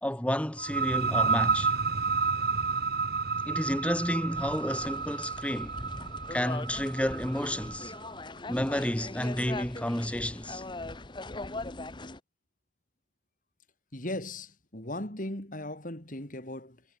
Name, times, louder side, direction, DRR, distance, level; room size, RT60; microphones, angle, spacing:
voice 1, 0.0-1.7 3.5-5.8 6.3-7.9 8.5-10.6, equal, 5° left, 1.8 m, -31 dB
sound 1, 0.6-8.1, right 5 dB, 60° right, 1.5 m, -30 dB
sound 2, 4.3-12.2, left 2 dB, 25° left, 1.1 m, -40 dB
voice 2, 13.9-16.8, left 1 dB, 50° left, 4.5 m, -37 dB
head